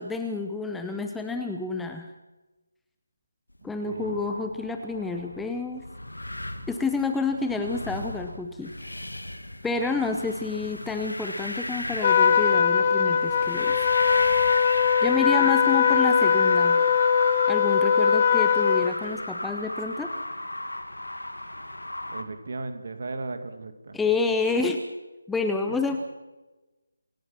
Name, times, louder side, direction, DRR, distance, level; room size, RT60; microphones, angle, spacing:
voice 1, 0.0-2.1 3.6-5.8 6.7-8.7 9.6-13.9 15.0-16.8 17.5-20.1 23.9-24.8 25.3-26.0, left 4 dB, 5° left, 5 dB, 0.9 m, -29 dB
voice 2, 3.6-4.2 15.4-15.6 22.1-24.0, right 3 dB, 45° right, 8 dB, 2.5 m, -36 dB
sound 1, 3.7-22.2, left 1 dB, 75° left, 2.4 m, -34 dB
Trumpet, 12.0-18.9, left 7 dB, 30° left, 1.1 m, -21 dB
27.5 x 15.5 x 6.1 m, 1.1 s
figure-of-eight pair, 155°, 0 cm